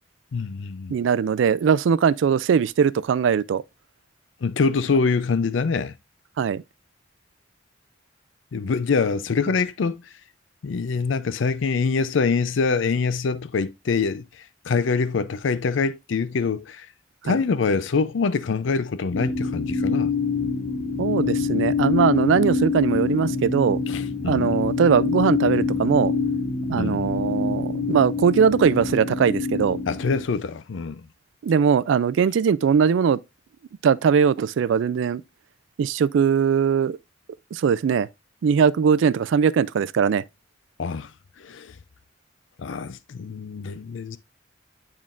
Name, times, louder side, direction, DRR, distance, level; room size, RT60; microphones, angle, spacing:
voice 1, 0.3-0.9 4.4-5.9 8.5-10.0 10.6-14.2 14.7-16.9 17.2-20.1 23.9-24.6 26.8-27.1 29.9-31.0 40.8-41.1 41.4-41.7 42.6-44.2, left 4 dB, 80° left, 0.5 m, -24 dB
voice 2, 0.9-3.6 6.4-6.6 17.3-17.4 21.0-23.8 24.3-26.1 26.7-29.8 31.4-33.2 33.8-35.2 35.8-37.0 37.5-38.1 38.4-40.2, right 7 dB, 75° right, 0.3 m, -20 dB
sound 1, 19.1-30.2, left 4 dB, 50° left, 1.1 m, -25 dB
10.5 x 3.7 x 2.4 m
head